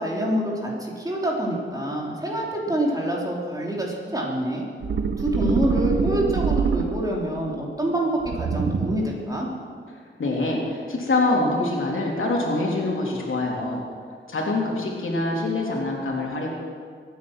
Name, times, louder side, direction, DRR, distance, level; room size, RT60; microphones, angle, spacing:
voice 1, 0.0-4.6 5.2-9.5, right 1 dB, 20° right, -3 dB, 3.4 m, -26 dB
sound 1, 4.8-7.3 8.2-9.2, right 5 dB, 70° right, 0.9 m, -25 dB
voice 2, 10.2-13.8 14.3-16.5, left 2 dB, 85° left, -2 dB, 3.3 m, -25 dB
23.5 x 9.2 x 6.2 m, 2.1 s
wide cardioid pair, 110°, 20 cm